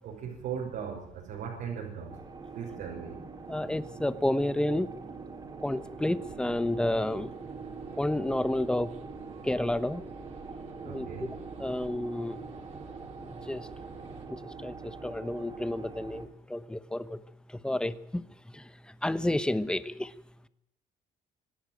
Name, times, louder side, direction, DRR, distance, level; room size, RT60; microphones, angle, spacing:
voice 1, 0.0-2.2 2.5-3.2 10.8-11.3, right 7 dB, 65° right, 5.6 m, -38 dB
sound 1, 2.1-16.3, right 4 dB, 25° right, 4.6 m, -43 dB
voice 2, 3.5-4.9 5.6-7.3 8.0-8.9 9.4-10.0 10.8-11.1 11.6-12.4 13.5-13.6 14.6-14.7 15.0-17.2 17.6-18.2 19.0-20.1, left 1 dB, 5° left, 1.0 m, -30 dB
sound 2, 6.2-14.3, right 4 dB, 50° right, 4.4 m, -54 dB
26.5 x 12.0 x 9.1 m
cardioid pair, 140°, 16 cm